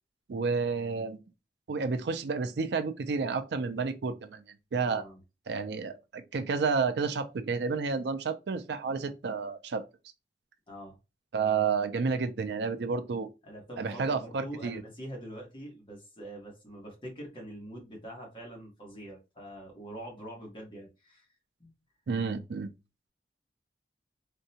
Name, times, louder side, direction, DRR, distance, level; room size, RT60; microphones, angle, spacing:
voice 1, 0.3-1.2 1.7-4.4 4.7-5.0 5.5-9.8 11.3-13.3 13.8-14.8 22.1-22.7, right 5 dB, 75° right, 0.4 m, -30 dB
voice 2, 4.9-5.2 10.7-10.9 13.4-21.3 21.6-21.7, right 1 dB, 30° left, 1.2 m, -44 dB
3.7 x 2.2 x 2.7 m
head